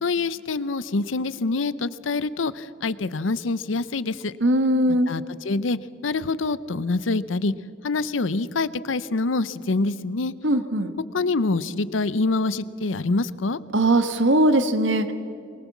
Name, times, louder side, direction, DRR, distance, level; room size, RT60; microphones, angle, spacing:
voice 1, 0.0-4.3 4.9-7.5 7.8-10.3 11.1-13.6, left 3 dB, 85° left, 17 dB, 0.7 m, -26 dB
voice 2, 4.4-5.1 10.4-10.9 13.7-15.1, right 1 dB, 70° right, 10 dB, 1.4 m, -20 dB
23.0 x 19.5 x 7.3 m, 2.5 s
head